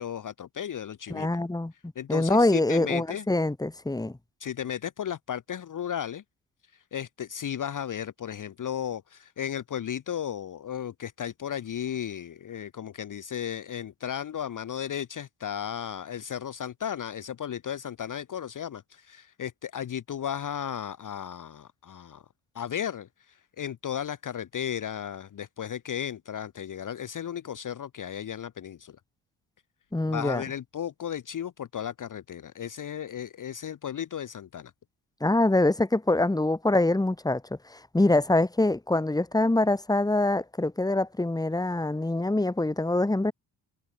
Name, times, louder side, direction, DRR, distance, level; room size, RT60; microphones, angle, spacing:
voice 1, 0.0-1.3 2.0-3.3 4.4-6.2 6.9-22.2 22.5-29.0 30.1-34.7, left 9 dB, 45° left, 0.9 m, -35 dB
voice 2, 1.1-1.7 2.1-4.2 29.9-30.4 35.2-37.4 37.7-43.3, left 2 dB, 10° left, 1.6 m, -24 dB
cardioid pair, 85°, 44 cm